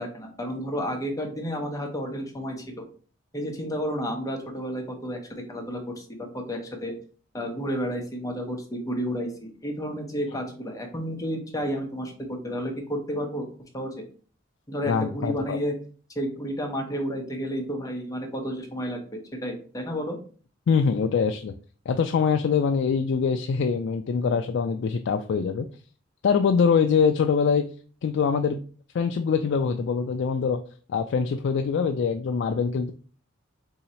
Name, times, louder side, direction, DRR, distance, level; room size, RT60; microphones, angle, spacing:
voice 1, 0.0-2.8 3.3-6.9 7.3-13.5 13.7-14.0 14.7-15.7 16.2-20.2, equal, 15° left, 2 dB, 0.8 m, -31 dB
voice 2, 14.8-15.6 20.7-21.5 21.9-25.7 26.2-27.7 28.0-28.6 28.9-30.6 30.9-32.9, left 6 dB, 60° left, 6 dB, 0.3 m, -23 dB
3.8 x 2.8 x 4.2 m, 0.41 s
head